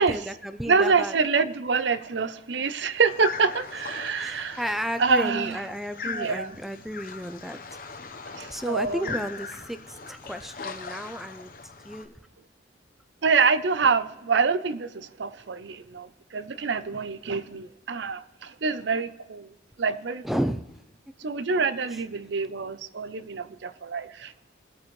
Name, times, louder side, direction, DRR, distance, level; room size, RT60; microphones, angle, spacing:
voice 1, 0.0-1.2 4.2-7.6 8.5-11.5 11.8-12.1 20.2-20.6, equal, ahead, 0.5 m, -32 dB
voice 2, 0.7-4.6 5.0-5.6 6.0-6.6 8.4-9.2 13.2-19.5 19.8-20.2 21.2-24.3, right 5 dB, 80° right, 0.6 m, -26 dB
sound 1, 3.1-12.0, left 5 dB, 50° left, 1.0 m, -39 dB
20.5 x 8.7 x 3.2 m
head